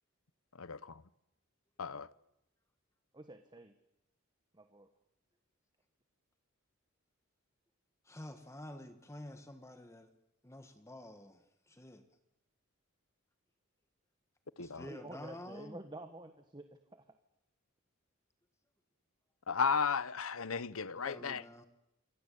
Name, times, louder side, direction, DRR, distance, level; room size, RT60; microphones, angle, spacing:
voice 1, 3.1-3.7 4.5-4.9 14.9-17.2, right 1 dB, 20° right, 1.4 m, -50 dB
voice 2, 8.0-10.1 10.4-12.0 14.6-15.8 21.0-21.7, left 1 dB, 15° left, 1.5 m, -49 dB
voice 3, 19.5-21.6, left 5 dB, 70° left, 1.0 m, -34 dB
27.5 x 23.5 x 8.5 m
head